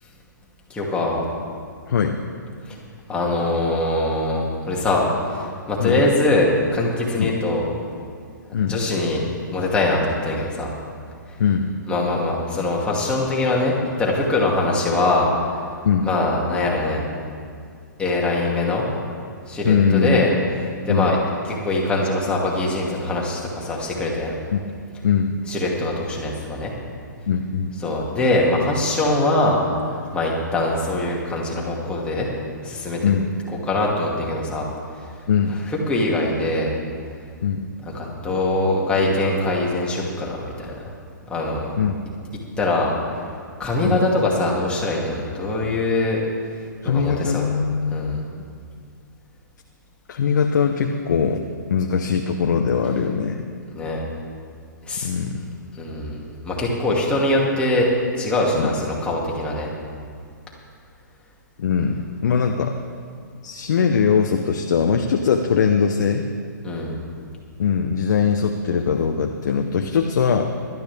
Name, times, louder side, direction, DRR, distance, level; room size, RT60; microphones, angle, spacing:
voice 1, 0.7-1.2 3.1-7.6 8.7-9.2 9.5-10.7 11.9-15.3 16.0-17.0 18.0-18.9 19.5-20.3 20.9-21.2 21.4-24.3 25.5-26.7 27.8-32.3 32.6-33.1 33.5-34.7 35.9-36.7 37.9-40.7 41.3-41.7 42.6-42.9 43.6-46.2 46.8-47.5 47.9-48.2 53.7-54.0 54.9-55.1 55.7-57.9 58.2-59.7 66.6-66.9, left 2 dB, 10° left, -4 dB, 2.4 m, -22 dB
voice 2, 1.9-2.2 5.8-6.1 7.2-7.3 8.5-8.8 11.4-11.7 15.8-16.1 19.6-20.3 20.9-21.1 24.5-24.6 25.0-25.4 27.3-27.7 33.0-33.3 35.3-35.5 37.4-37.6 41.8-42.0 43.8-44.0 46.8-48.3 50.1-53.5 55.0-55.4 58.5-58.7 61.6-62.7 63.4-66.3 67.6-70.5, left 6 dB, 60° left, 4 dB, 0.8 m, -21 dB
18.0 x 12.5 x 3.5 m, 2.2 s
hypercardioid pair, 130°, 11 cm